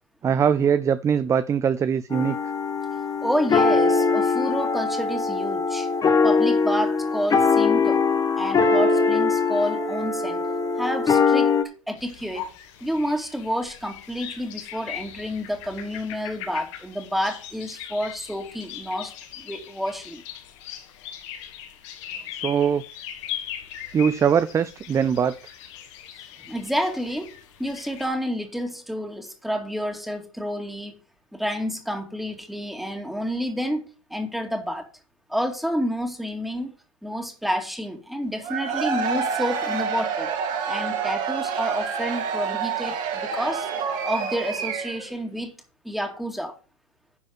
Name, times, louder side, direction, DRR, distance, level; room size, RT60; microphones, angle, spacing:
voice 1, 0.2-2.4 22.3-22.8 23.9-25.4, right 7 dB, 20° right, 0.4 m, -21 dB
sound 1, 2.1-11.6, left 4 dB, 20° left, 1.2 m, -21 dB
voice 2, 3.2-5.9 6.2-8.0 8.4-10.4 10.8-11.5 11.9-12.5 12.8-20.2 26.5-31.0 31.3-33.8 34.1-34.9 35.3-36.7 37.0-40.3 40.7-43.7 44.0-45.5 45.8-46.6, equal, ahead, 2.2 m, -29 dB
sound 2, 12.0-28.1, left 10 dB, 60° left, 2.5 m, -39 dB
Cheering / Crowd, 38.4-45.1, right 6 dB, 50° right, 2.4 m, -28 dB
11.0 x 4.2 x 6.3 m
hypercardioid pair, 105°, 17 cm